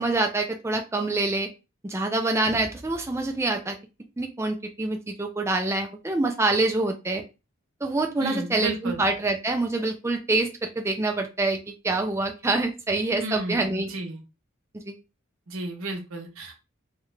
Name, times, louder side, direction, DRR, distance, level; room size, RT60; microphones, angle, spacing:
voice 1, 0.0-1.5 1.8-3.8 4.2-7.2 7.8-13.9 14.7-15.0, right 2 dB, 15° right, 4 dB, 0.4 m, -26 dB
voice 2, 8.2-9.0 13.2-14.2 15.5-16.6, right 2 dB, 90° right, 2 dB, 1.0 m, -33 dB
3.1 x 2.4 x 3.2 m, 0.28 s
head